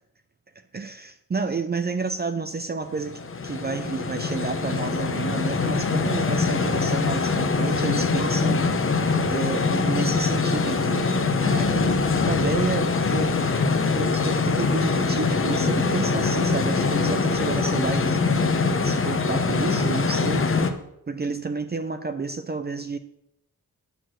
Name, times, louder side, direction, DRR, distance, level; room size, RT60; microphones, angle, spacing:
voice 1, 0.7-8.6 9.3-11.0 11.4-13.3 13.9-18.2 18.8-20.7 21.1-23.0, right 4 dB, 30° right, 8 dB, 0.6 m, -30 dB
sound 1, 2.9-20.7, left 4 dB, 35° left, 0.9 m, -23 dB
Organ, 13.2-17.7, left 6 dB, 70° left, 1.3 m, -41 dB
9.4 x 6.1 x 6.4 m, 0.80 s
wide cardioid pair, 110°, 35 cm